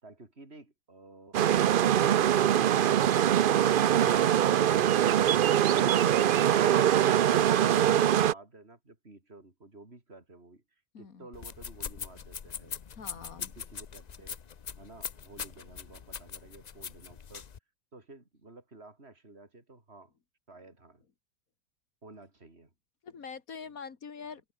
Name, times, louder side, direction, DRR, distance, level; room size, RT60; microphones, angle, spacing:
voice 1, 0.0-1.4 7.4-12.8 13.4-14.4 14.8-17.5 17.9-20.1 20.5-21.0 22.0-22.7, right 2 dB, 40° right, 4.8 m, -52 dB
sound 1, 1.3-8.3, right 10 dB, 80° right, 0.4 m, -23 dB
voice 2, 10.9-11.3 13.0-13.5 23.0-24.4, left 6 dB, 65° left, 2.3 m, -44 dB
sound 2, 11.3-17.6, left 7 dB, 45° left, 0.5 m, -42 dB
omnidirectional pair, 1.6 m